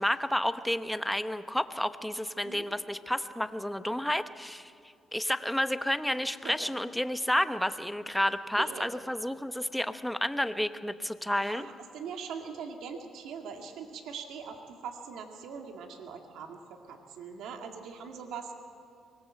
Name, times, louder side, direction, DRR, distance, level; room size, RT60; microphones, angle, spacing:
voice 1, 0.0-4.7 5.1-11.7, left 1 dB, 5° left, 11 dB, 1.0 m, -30 dB
voice 2, 8.5-8.9 11.5-18.5, right 6 dB, 80° right, 4 dB, 2.0 m, -42 dB
24.5 x 20.5 x 7.6 m, 2.5 s
cardioid pair, 90°, 0 cm